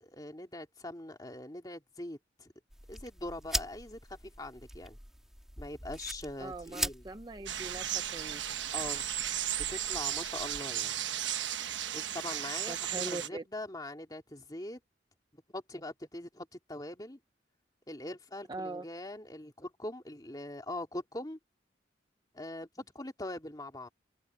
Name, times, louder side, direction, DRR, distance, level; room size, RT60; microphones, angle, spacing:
voice 1, 0.0-2.5 2.9-5.0 5.6-7.0 8.7-9.1 9.5-11.0 11.9-14.8 15.3-17.2 17.9-21.4 22.3-23.9, left 1 dB, 20° left, 2.7 m, -42 dB
sound 1, 2.7-10.6, right 1 dB, ahead, 2.7 m, -42 dB
voice 2, 6.4-8.5 12.7-13.4 18.5-18.9, right 2 dB, 25° right, 0.6 m, -41 dB
sound 2, 7.5-13.3, right 11 dB, 85° right, 1.1 m, -35 dB
head